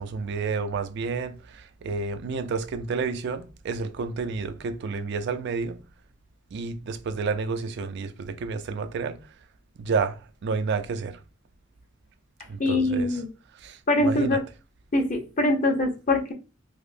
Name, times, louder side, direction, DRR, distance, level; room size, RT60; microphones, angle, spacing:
voice 1, 0.0-5.8 6.5-9.2 9.8-11.2 12.5-13.1 13.6-14.4, right 4 dB, 60° right, 0.4 m, -30 dB
voice 2, 12.6-13.3 13.9-14.4 14.9-16.3, left 2 dB, 40° left, 0.8 m, -23 dB
4.9 x 2.0 x 2.5 m
head